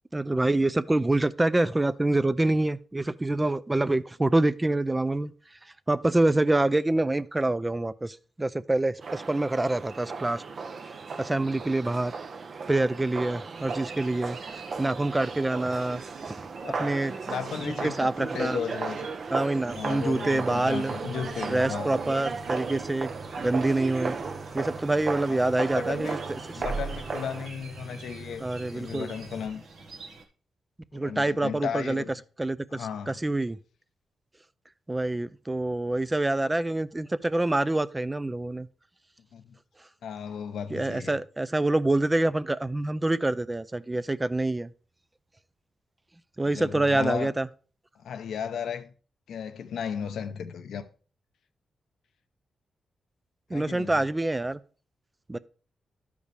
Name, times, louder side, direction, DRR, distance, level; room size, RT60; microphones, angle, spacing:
voice 1, 0.1-5.3 5.9-10.4 11.2-12.1 12.7-14.4 14.8-16.5 16.8-17.1 17.8-18.6 19.3-20.9 21.5-23.1 23.4-24.2 24.5-26.2 28.4-29.1 30.9-32.0 32.4-33.6 34.9-38.7 40.7-44.7 46.4-47.5 53.5-54.6 55.3-55.4, right 2 dB, 15° right, 0.4 m, -26 dB
sound 1, 9.0-27.5, right 4 dB, 55° right, 0.7 m, -36 dB
sound 2, 13.5-30.2, right 4 dB, 80° right, 1.4 m, -48 dB
voice 2, 16.6-19.1 19.7-21.9 25.2-26.2 26.6-28.4 28.7-29.6 30.9-32.1 32.7-33.2 39.3-39.6 40.0-41.2 46.4-47.3 48.0-48.9 49.3-50.9 53.5-54.0, left 7 dB, 80° left, 0.6 m, -35 dB
sound 3, 19.7-29.5, right 3 dB, ahead, 1.2 m, -43 dB
12.0 x 5.2 x 3.3 m
cardioid pair, 85°, 0 cm